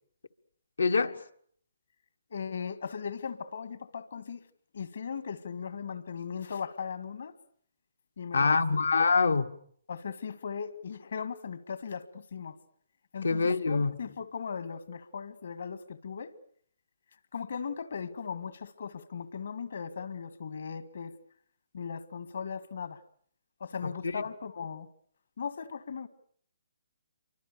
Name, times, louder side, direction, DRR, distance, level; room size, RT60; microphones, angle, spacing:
voice 1, 0.8-1.2 8.3-9.5 13.2-13.9, left 4 dB, 85° left, 1.7 m, -25 dB
voice 2, 2.3-4.4 4.7-7.3 8.2-8.9 9.9-12.6 13.1-16.3 17.3-21.2 21.7-23.0 23.6-24.9 25.4-26.1, left 6 dB, 65° left, 1.9 m, -38 dB
29.0 x 24.5 x 6.9 m
hypercardioid pair, 145°, 0 cm